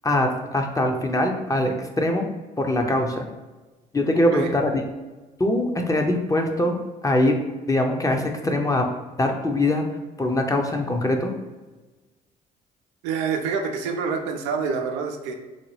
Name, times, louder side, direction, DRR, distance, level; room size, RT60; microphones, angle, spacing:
voice 1, 0.0-2.3 2.6-3.2 3.9-4.8 5.4-7.4 7.7-8.8 9.2-9.8 10.2-11.3, left 1 dB, 15° left, 3 dB, 0.7 m, -22 dB
voice 2, 13.0-15.3, right 5 dB, 85° right, 4 dB, 0.4 m, -27 dB
4.0 x 2.2 x 3.2 m, 1.2 s
supercardioid pair, 55°, 19 cm